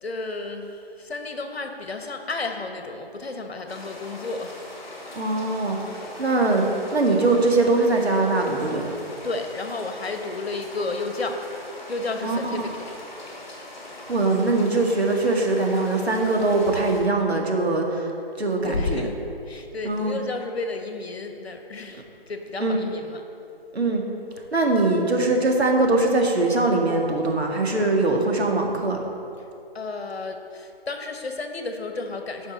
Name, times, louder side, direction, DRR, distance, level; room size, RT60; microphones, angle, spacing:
voice 1, 0.0-4.6 9.2-11.4 11.9-12.8 18.6-19.2 19.5-23.2 29.4-29.5 29.7-32.5, left 3 dB, 75° left, 5 dB, 1.3 m, -32 dB
sound 1, 3.7-17.0, left 2 dB, 45° left, 2.3 m, -41 dB
voice 2, 5.1-6.7 6.9-8.8 12.2-12.7 14.1-18.1 18.4-19.1 19.8-20.2 22.6-22.8 23.7-24.0 24.5-29.0, right 2 dB, 85° right, 1 dB, 1.9 m, -22 dB
14.5 x 5.5 x 4.1 m, 2.7 s
figure-of-eight pair, 165°, 31 cm